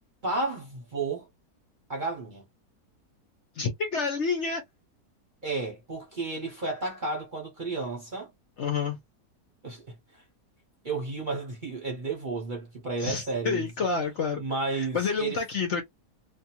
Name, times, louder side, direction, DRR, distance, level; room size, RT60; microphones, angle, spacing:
voice 1, 0.2-1.3 1.9-2.4 5.4-8.3 9.6-9.9 10.8-13.7 14.4-15.4, right 3 dB, 40° right, 0.8 m, -32 dB
voice 2, 3.6-4.6 8.6-9.0 13.0-14.4 14.9-15.8, left 5 dB, 55° left, 0.9 m, -28 dB
2.7 x 2.3 x 2.8 m
omnidirectional pair, 1.8 m